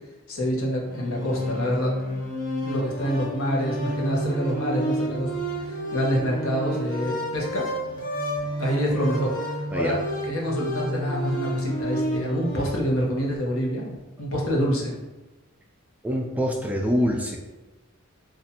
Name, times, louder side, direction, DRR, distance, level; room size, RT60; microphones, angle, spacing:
voice 1, 0.3-1.9 2.6-5.3 5.6-7.7 8.6-10.0 10.3-14.9, equal, 70° left, -2 dB, 0.9 m, -27 dB
sound 1, 0.9-12.7, equal, 40° left, 0.7 m, -29 dB
voice 2, 16.0-17.4, equal, 5° right, -1 dB, 0.3 m, -25 dB
2.7 x 2.5 x 4.2 m, 1.1 s
head